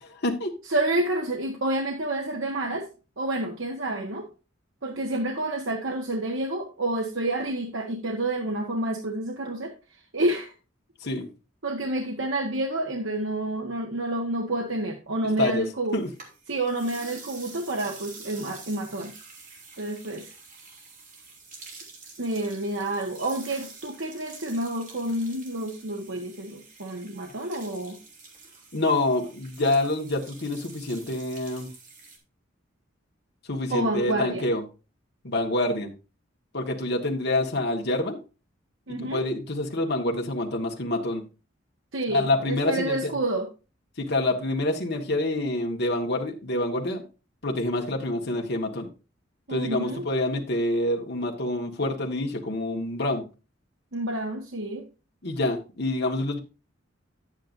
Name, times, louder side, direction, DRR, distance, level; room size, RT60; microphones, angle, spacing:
voice 1, 0.0-0.6 11.0-11.3 15.4-15.7 15.9-16.1 28.7-31.7 33.5-34.6 35.2-35.9 36.5-38.2 39.0-41.2 42.1-43.1 44.0-47.0 47.4-48.9 49.5-53.2 55.2-56.4, left 2 dB, 60° left, 1.7 m, -27 dB
voice 2, 0.7-2.9 3.2-4.3 4.8-9.7 10.1-10.5 11.6-16.0 16.5-19.1 19.8-20.3 22.2-28.0 33.7-34.5 38.9-39.2 41.9-43.5 49.5-50.0 53.9-54.8, right 1 dB, 75° right, 1.5 m, -29 dB
sound 1, 15.9-32.2, right 4 dB, 45° right, 2.9 m, -47 dB
10.5 x 8.9 x 2.7 m
head